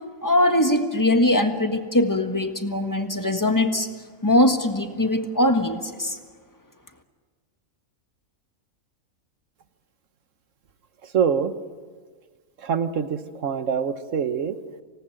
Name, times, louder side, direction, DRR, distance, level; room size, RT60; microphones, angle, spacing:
voice 1, 0.2-3.9 4.2-6.2, left 1 dB, 15° left, 6 dB, 1.5 m, -21 dB
voice 2, 11.0-11.5 12.6-14.6, right 7 dB, 60° right, 11 dB, 1.4 m, -25 dB
26.0 x 18.5 x 9.0 m, 1.5 s
omnidirectional pair, 1.6 m